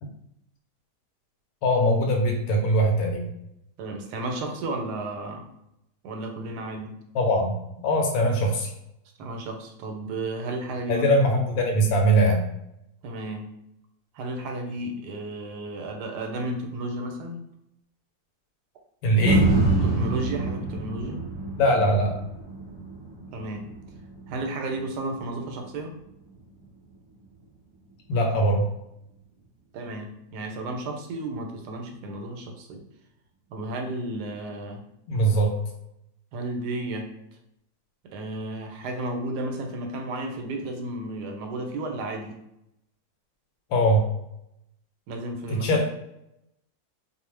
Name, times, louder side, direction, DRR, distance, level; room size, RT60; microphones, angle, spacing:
voice 1, 1.6-3.3 7.1-7.6 7.8-8.7 10.9-12.4 19.0-19.5 21.6-22.1 28.1-28.7 35.1-35.5 43.7-44.0 45.5-45.8, right 1 dB, 75° left, 1 dB, 1.0 m, -21 dB
voice 2, 3.8-5.4 6.0-7.0 9.2-11.1 13.0-13.5 14.1-17.4 19.8-21.2 23.3-23.7 24.3-25.9 29.7-32.8 33.5-34.8 36.3-37.1 38.1-42.4 45.1-45.8, right 2 dB, 90° right, 3 dB, 1.2 m, -33 dB
sound 1, 19.2-27.4 27.9-28.0, right 3 dB, 30° right, 1.1 m, -28 dB
2.6 x 2.1 x 3.1 m, 0.83 s
omnidirectional pair, 1.7 m